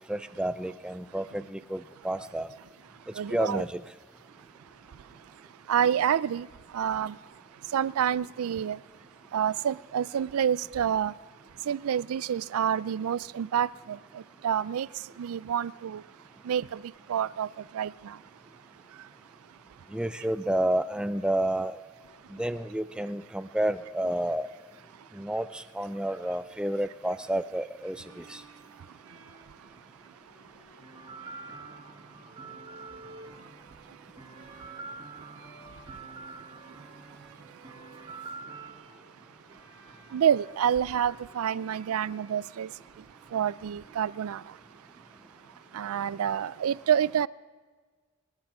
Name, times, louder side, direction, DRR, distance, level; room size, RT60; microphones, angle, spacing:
voice 1, 0.1-2.5 3.3-3.8 19.9-21.8 22.3-24.5 25.1-28.4, right 1 dB, 5° right, 0.3 m, -30 dB
voice 2, 3.2-3.6 5.7-6.5 6.7-7.1 7.7-8.8 9.3-11.1 11.7-14.9 15.2-16.0 16.5-16.8 17.1-17.5 17.7-18.2 40.1-42.7 43.3-44.4 45.7-47.3, right 9 dB, 85° right, 0.3 m, -28 dB
Bowed string instrument, 27.9-44.8, right 2 dB, 65° right, 4.3 m, -56 dB
sound 1, 30.8-38.7, right 4 dB, 20° right, 1.2 m, -46 dB
23.5 x 10.5 x 4.9 m
head